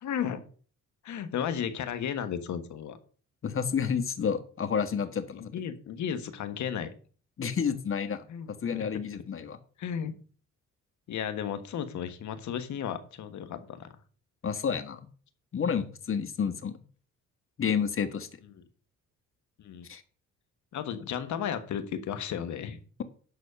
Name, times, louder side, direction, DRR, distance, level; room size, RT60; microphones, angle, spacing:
voice 1, 0.0-0.4 1.0-3.0 5.3-6.9 8.3-8.5 8.8-8.9 9.8-10.2 11.1-13.9 18.5-18.6 19.6-19.8 20.7-22.8, left 8 dB, 70° left, 10 dB, 1.4 m, -34 dB
voice 2, 3.4-5.5 7.4-8.2 8.6-9.6 14.4-15.0 15.5-16.8 17.6-18.3 19.9-20.0, left 7 dB, 45° left, 10 dB, 1.5 m, -30 dB
12.0 x 4.2 x 6.8 m, 0.42 s
cardioid pair, 90°, 30 cm